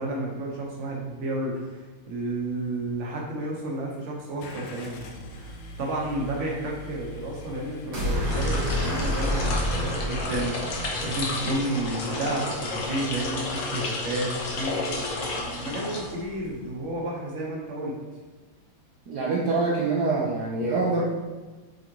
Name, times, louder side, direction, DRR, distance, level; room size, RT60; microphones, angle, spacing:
voice 1, 0.0-5.1 5.3-15.1 15.6-18.0, right 1 dB, 40° right, -2 dB, 1.4 m, -31 dB
Car / Engine starting, 4.4-10.8, left 1 dB, 85° left, 1.7 m, -44 dB
sound 1, 7.9-12.2, equal, 85° right, 2.9 m, -29 dB
sound 2, 8.2-16.5, left 3 dB, 55° left, 0.9 m, -32 dB
voice 2, 19.1-21.0, right 3 dB, 60° right, -4 dB, 1.2 m, -25 dB
7.7 x 4.2 x 3.1 m, 1.3 s
omnidirectional pair, 2.4 m